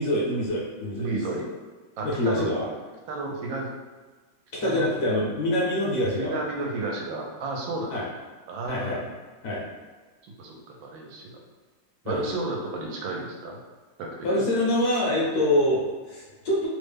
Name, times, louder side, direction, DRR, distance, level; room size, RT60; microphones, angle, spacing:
voice 1, 0.0-1.1 2.0-2.7 4.6-6.4 7.9-8.0 8.6-9.0 9.4-9.6 12.0-12.2 14.2-16.7, left 1 dB, 65° left, -5 dB, 1.1 m, -25 dB
voice 2, 1.0-1.5 2.0-2.6 3.1-3.7 4.6-5.2 6.2-7.9 8.5-9.0 10.4-11.4 12.0-13.6 14.0-14.4, right 2 dB, 85° right, 0 dB, 1.3 m, -32 dB
3.3 x 2.1 x 3.4 m, 1.4 s
omnidirectional pair, 2.1 m